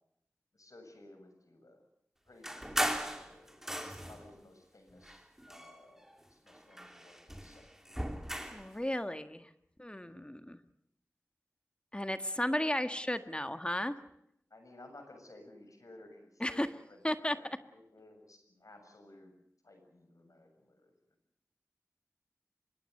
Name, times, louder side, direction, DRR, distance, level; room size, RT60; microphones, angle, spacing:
voice 1, 0.5-1.8 2.3-8.0 9.9-10.2 14.5-17.4 17.7-19.3 19.6-20.9, left 2 dB, 75° left, 6 dB, 7.1 m, -57 dB
sound 1, 2.4-4.3 5.0-6.2 6.5-8.7, equal, 5° right, 3.3 m, -38 dB
voice 2, 8.5-9.5 9.8-10.6 11.9-14.0 16.4-16.7 17.0-17.4, left 1 dB, 20° left, 9 dB, 1.7 m, -34 dB
25.0 x 22.5 x 6.7 m, 0.75 s
wide cardioid pair, 40°, 6 cm